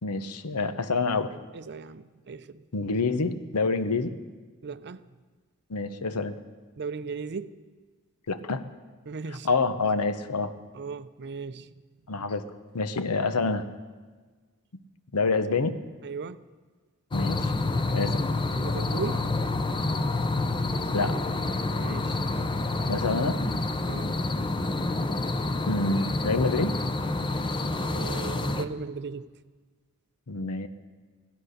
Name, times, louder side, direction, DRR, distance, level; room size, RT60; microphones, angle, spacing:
voice 1, 0.0-1.3 2.7-4.1 5.7-6.4 8.3-8.6 9.4-10.5 12.1-12.4 12.7-13.6 15.1-15.8 17.1-17.5 17.9-18.2 20.9-21.2 22.9-23.6 25.7-26.7 30.3-30.7, left 3 dB, 90° left, 0.9 m, -27 dB
voice 2, 1.5-2.6 4.6-5.0 6.8-7.6 9.1-9.5 10.7-11.7 16.0-16.5 17.9-18.1 18.4-19.3 21.7-22.2 23.9-24.2 27.8-29.3, right 5 dB, 50° right, 0.5 m, -37 dB
sound 1, 17.1-28.6, left 2 dB, 20° left, 0.6 m, -28 dB
16.5 x 12.5 x 6.5 m
head